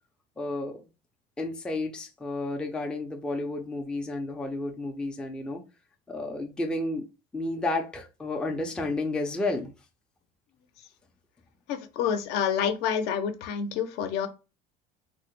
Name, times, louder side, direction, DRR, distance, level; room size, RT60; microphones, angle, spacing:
voice 1, 0.4-0.8 1.4-5.6 6.1-7.1 7.3-9.7, left 2 dB, 5° left, 0.4 m, -31 dB
voice 2, 11.7-14.3, left 8 dB, 65° left, 0.5 m, -28 dB
3.5 x 2.0 x 2.9 m
cardioid pair, 145°, 18 cm